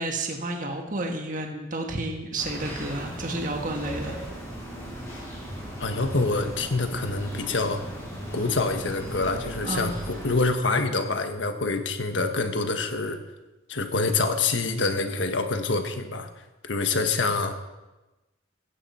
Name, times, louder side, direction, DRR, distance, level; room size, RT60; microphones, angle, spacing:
voice 1, 0.0-4.2 9.6-9.9, right 2 dB, 45° right, 2 dB, 1.5 m, -31 dB
sound 1, 2.4-10.4, equal, 15° left, 5.8 m, -37 dB
voice 2, 5.8-7.8 8.3-9.9 10.2-13.2 13.7-16.3 16.6-17.5, left 3 dB, 65° left, 6 dB, 1.5 m, -26 dB
16.5 x 14.5 x 4.4 m, 1.1 s
head